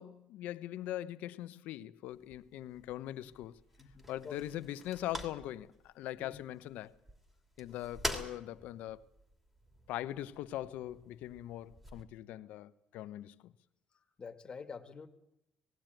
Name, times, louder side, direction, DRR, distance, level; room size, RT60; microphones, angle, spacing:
voice 1, 0.0-3.6 4.1-6.9 7.6-9.0 9.9-13.5, left 13 dB, 85° left, 0.9 m, -41 dB
sound 1, 2.1-12.0, equal, 10° right, 2.9 m, -47 dB
voice 2, 3.8-4.6 6.2-6.4 14.2-15.1, left 5 dB, 35° left, 1.9 m, -48 dB
19.0 x 16.5 x 9.1 m
cardioid pair, 105°, 3 cm